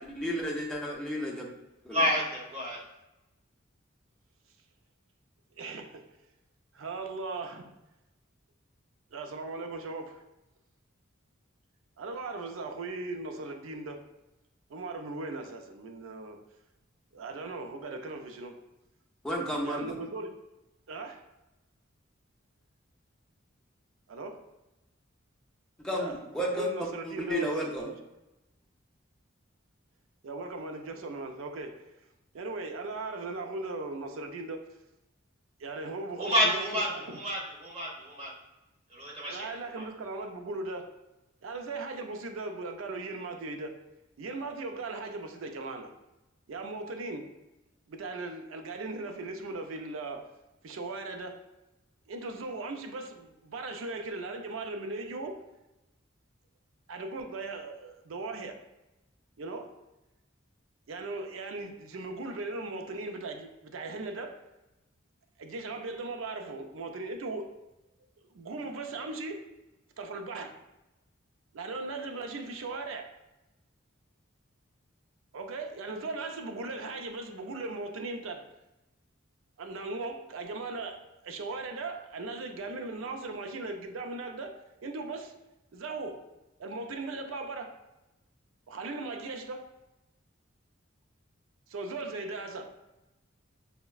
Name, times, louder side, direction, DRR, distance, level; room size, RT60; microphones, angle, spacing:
voice 1, 0.1-1.5 1.8-2.1 19.2-20.0 25.8-27.9, equal, 5° left, -2 dB, 0.5 m, -32 dB
voice 2, 1.9-2.8 36.2-38.3 38.9-39.9, equal, 30° right, -3 dB, 0.8 m, -30 dB
voice 3, 5.6-6.0 6.7-7.7 9.1-10.2 12.0-14.0 14.7-16.4 17.1-18.6 19.6-20.4 20.9-21.2 24.1-24.4 25.9-26.2 26.5-28.0 30.2-31.9 32.3-34.6 35.6-36.6 36.9-37.2 39.3-41.0 41.4-43.8 44.2-45.9 46.5-47.3 47.9-50.3 50.6-51.4 52.1-55.4 56.9-58.6 59.4-59.7 60.9-64.4 65.4-67.6 68.3-69.5 70.0-70.6 71.5-73.1 75.3-78.5 79.6-85.4 85.7-86.3 86.6-87.8 88.7-89.7 91.7-92.7, right 3 dB, 75° right, 5 dB, 0.4 m, -38 dB
5.5 x 2.1 x 2.3 m, 0.98 s
head